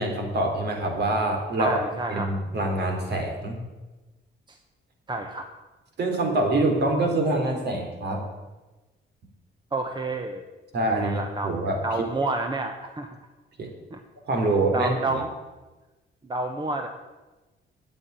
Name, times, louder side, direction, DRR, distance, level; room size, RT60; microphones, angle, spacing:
voice 1, 0.0-1.8 2.1-3.6 6.0-8.3 10.7-11.8 13.6-13.7 14.3-15.2, right 2 dB, 55° right, 2 dB, 3.7 m, -25 dB
voice 2, 1.6-2.3 4.5-4.6 5.1-5.5 9.7-10.4 10.9-13.2 13.9-14.0 14.7-15.3 16.2-16.9, right 2 dB, 25° right, 5 dB, 1.2 m, -29 dB
8.8 x 8.3 x 9.4 m, 1.1 s
cardioid pair, 90°, 20 cm